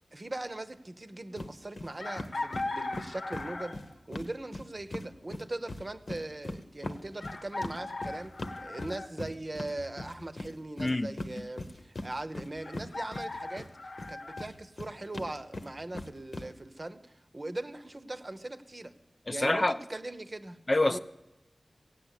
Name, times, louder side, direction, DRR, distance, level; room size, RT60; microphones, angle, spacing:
voice 1, 0.1-3.8 4.1-13.7 14.1-17.0 17.3-18.9 19.3-20.6 20.9-21.0, right 2 dB, 40° right, 0.9 m, -40 dB
sound 1, 1.4-1.5 1.8-1.9 2.2-5.1 5.3-13.7 14.0-16.5, left 2 dB, 65° left, 1.1 m, -40 dB
Chicken rooster, 2.0-3.9 5.6-5.7 7.2-9.1 12.6-14.5, left 2 dB, 85° left, 1.2 m, -38 dB
voice 2, 10.8-11.5 19.3-19.8 20.7-21.0, left 2 dB, 40° left, 0.6 m, -27 dB
15.5 x 8.7 x 8.3 m
wide cardioid pair, 55°, 0 cm